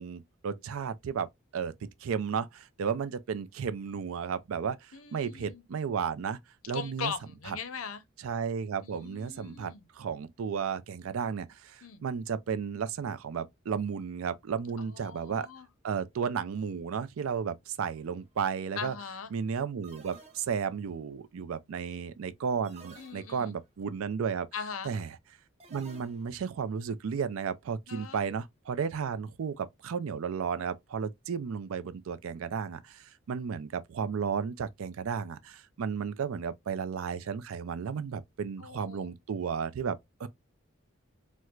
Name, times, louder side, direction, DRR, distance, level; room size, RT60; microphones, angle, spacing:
voice 1, 0.0-6.4 6.7-7.1 7.5-7.6 8.2-15.5 15.8-18.9 19.3-24.5 24.8-25.2 25.7-40.3, right 6 dB, 80° right, 0.4 m, -33 dB
voice 2, 4.9-5.6 6.7-8.0 8.8-9.8 11.8-12.0 14.8-15.7 18.8-19.3 23.0-23.5 24.5-24.9 27.9-28.2 38.6-39.1, left 6 dB, 85° left, 0.6 m, -40 dB
sound 1, 17.8-18.2 19.8-20.9 22.6-23.7 25.6-26.5, right 3 dB, 30° right, 0.7 m, -53 dB
4.4 x 2.1 x 2.3 m
head